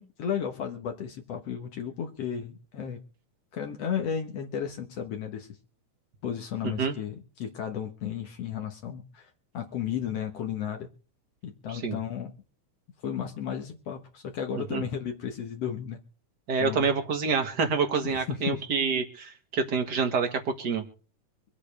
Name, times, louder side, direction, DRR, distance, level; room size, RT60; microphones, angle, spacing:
voice 1, 0.0-3.0 3.5-5.5 6.2-10.9 11.4-12.3 13.0-16.0 16.6-16.9 18.0-18.6, left 8 dB, 60° left, 2.1 m, -34 dB
voice 2, 16.5-20.8, right 5 dB, 40° right, 1.9 m, -27 dB
25.0 x 8.7 x 3.3 m
omnidirectional pair, 3.6 m